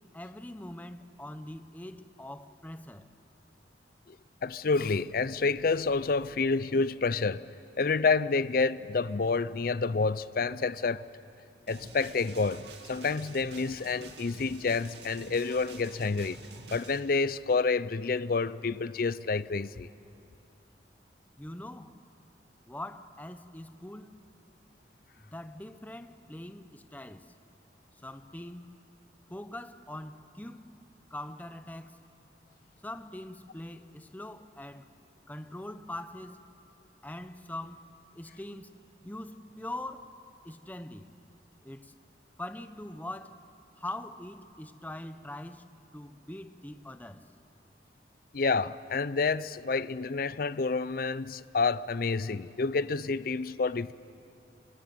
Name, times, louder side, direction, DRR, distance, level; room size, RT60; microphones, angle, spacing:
voice 1, 0.1-3.1 21.4-21.9 22.6-24.2 25.2-27.3 28.0-28.7 29.3-30.7 31.1-32.0 32.8-34.9 35.3-36.4 37.0-37.9 38.1-38.7 39.0-40.1 40.4-41.1 41.6-41.9 42.4-43.4 43.8-47.2, left 1 dB, 10° left, 0.8 m, -42 dB
voice 2, 4.4-11.0 11.7-19.9 48.3-53.9, left 4 dB, 55° left, 0.5 m, -29 dB
sound 1, 11.7-17.0, right 3 dB, 75° right, 2.3 m, -48 dB
25.5 x 23.0 x 9.5 m
head